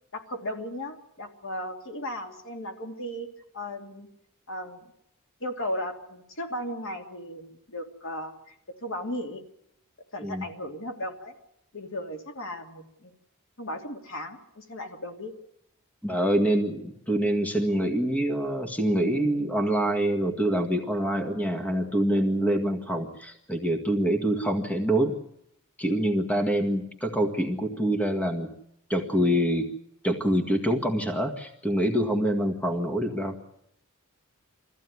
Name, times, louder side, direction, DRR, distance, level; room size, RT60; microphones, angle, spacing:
voice 1, 0.1-3.3 3.5-4.1 4.5-4.8 5.4-9.4 10.1-11.3 11.7-13.1 13.6-15.3, left 1 dB, 65° left, 4 dB, 2.7 m, -36 dB
voice 2, 16.0-25.2 25.8-28.5 28.9-29.7 30.0-33.4, right 1 dB, 5° left, 5 dB, 1.7 m, -25 dB
22.5 x 15.0 x 9.6 m, 0.77 s
head